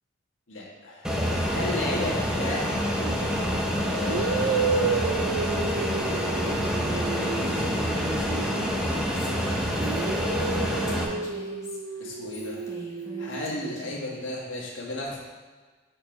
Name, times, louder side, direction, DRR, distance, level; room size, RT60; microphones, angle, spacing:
voice 1, 0.5-2.9 3.7-5.4 7.0-8.4 8.9-9.5 12.0-12.7 13.2-15.2, left 2 dB, 80° left, -3 dB, 1.7 m, -35 dB
Fixed-wing aircraft airplane, 1.0-11.0, equal, 5° right, 0.7 m, -27 dB
sound 1, 3.0-3.2 4.0-9.4 9.8-13.7, right 5 dB, 85° right, 0.4 m, -32 dB
Female speech woman speaking, 7.1-14.2, equal, 15° left, 1.1 m, -43 dB
6.6 x 4.6 x 5.2 m, 1.4 s
head